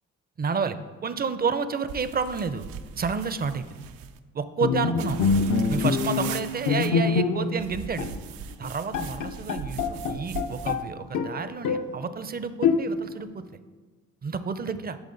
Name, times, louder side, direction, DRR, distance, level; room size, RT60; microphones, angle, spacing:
voice 1, 0.4-0.8 1.0-2.6 3.0-3.8 4.3-5.2 5.7-8.1 8.6-13.4 14.2-15.0, right 5 dB, 25° right, 12 dB, 0.5 m, -30 dB
sound 1, 1.9-4.2 5.0-6.9 7.6-10.8, right 8 dB, 75° right, 0.5 m, -39 dB
Bowed string instrument, 4.6-7.7 8.0-8.2 8.6-8.7 8.9-10.8 11.1-12.0 12.6-13.2, left 5 dB, 60° left, 0.6 m, -25 dB
10.5 x 3.6 x 3.8 m, 1.4 s
supercardioid pair, 65°, 35 cm